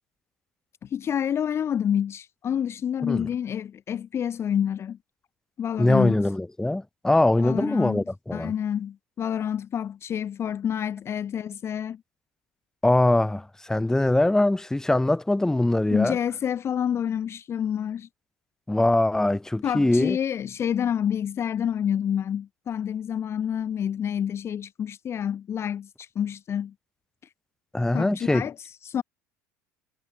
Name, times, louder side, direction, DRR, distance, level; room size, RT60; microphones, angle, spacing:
voice 1, 0.8-5.0 5.6-6.2 7.4-8.0 8.3-12.0 15.9-18.1 19.6-26.7 27.9-29.0, left 9 dB, 30° left, 0.7 m, -28 dB
voice 2, 5.8-8.5 12.8-16.2 18.7-20.2 27.7-28.4, left 1 dB, 5° left, 1.2 m, -22 dB
figure-of-eight pair, 65°, 8 cm